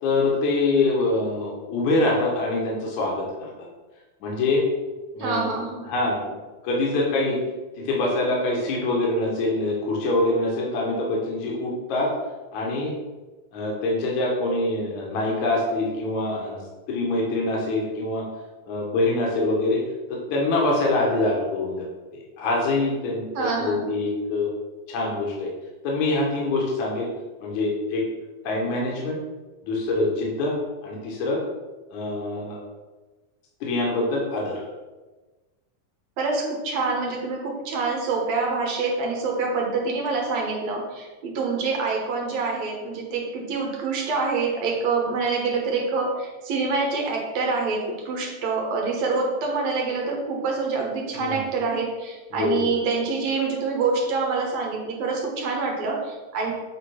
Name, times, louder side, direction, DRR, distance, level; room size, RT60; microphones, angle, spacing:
voice 1, 0.0-3.5 4.2-4.7 5.1-5.5 5.9-6.4 6.6-7.4 7.8-12.1 12.5-12.9 13.5-16.6 16.9-18.2 18.7-19.8 20.1-24.5 24.9-25.5 25.8-27.1 27.4-28.0 28.4-29.2 29.6-30.5 30.8-31.4 31.9-32.6 33.6-34.6 51.2-51.4 52.3-52.7, left 2 dB, 75° left, -2 dB, 2.6 m, -24 dB
voice 2, 5.2-5.9 23.3-23.9 36.2-56.5, right 4 dB, 65° right, 0 dB, 2.2 m, -26 dB
8.0 x 3.7 x 5.8 m, 1.2 s
omnidirectional pair, 3.5 m